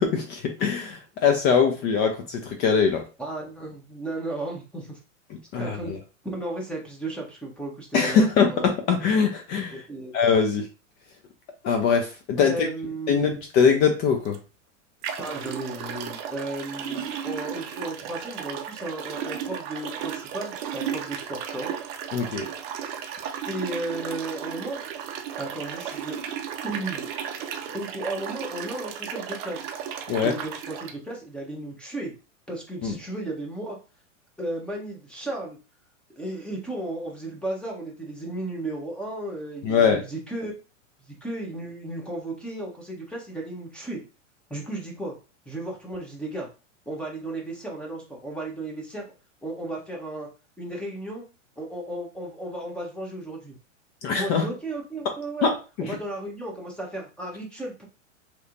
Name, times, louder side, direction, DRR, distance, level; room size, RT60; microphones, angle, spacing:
voice 1, 0.0-3.0 5.5-6.0 7.9-9.7 10.1-10.6 11.6-12.7 13.1-14.4 22.1-22.5 30.1-30.3 32.8-32.9 39.6-40.0 54.0-54.4 55.4-55.9, left 6 dB, 30° left, 4 dB, 0.4 m, -22 dB
voice 2, 3.2-5.0 5.6-6.0 6.2-8.7 9.7-10.1 12.4-13.4 15.2-21.7 23.5-24.8 25.4-26.2 26.6-27.1 27.7-29.7 30.2-32.1 32.5-33.8 34.4-35.6 36.2-40.5 41.1-44.0 44.5-45.1 45.5-46.5 46.9-49.1 49.4-50.3 50.6-51.2 51.6-53.5 54.1-55.5 55.8-57.9, right 2 dB, 5° left, -1 dB, 0.9 m, -34 dB
sound 1, 14.2-14.4 15.0-30.9, right 8 dB, 40° right, 0.5 m, -34 dB
3.1 x 2.9 x 2.5 m, 0.33 s
hypercardioid pair, 120°, 38 cm